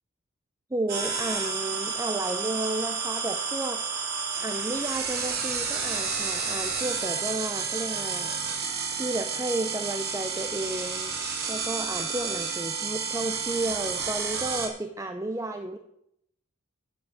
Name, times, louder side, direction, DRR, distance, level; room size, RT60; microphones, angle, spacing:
voice 1, 0.7-4.1 4.3-8.3 8.9-11.1 11.5-15.8, right 2 dB, 15° right, 6 dB, 0.6 m, -32 dB
sound 1, 0.9-14.7, right 5 dB, 45° right, 3.1 m, -31 dB
10.5 x 7.8 x 7.5 m, 0.76 s
head